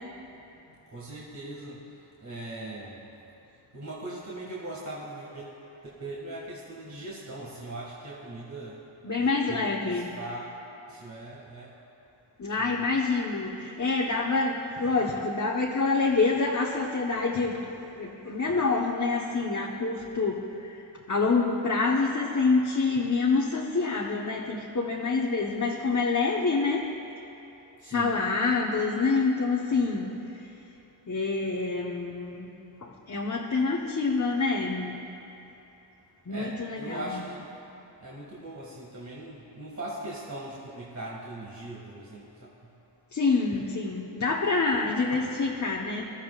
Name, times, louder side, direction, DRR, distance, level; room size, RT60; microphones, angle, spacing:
voice 1, 0.9-1.8 2.2-3.0 3.7-5.5 5.8-8.8 9.2-10.6 10.9-11.7 12.6-12.8 27.8-28.1 36.3-37.5 38.0-42.7, right 2 dB, 35° right, -5 dB, 2.1 m, -40 dB
voice 2, 9.0-10.1 12.4-20.7 21.1-26.9 27.9-30.1 31.1-32.5 32.8-35.0 36.3-37.2 43.1-46.1, left 4 dB, 35° left, -3 dB, 1.2 m, -27 dB
20.0 x 13.0 x 2.5 m, 3.0 s
cardioid pair, 50°, 47 cm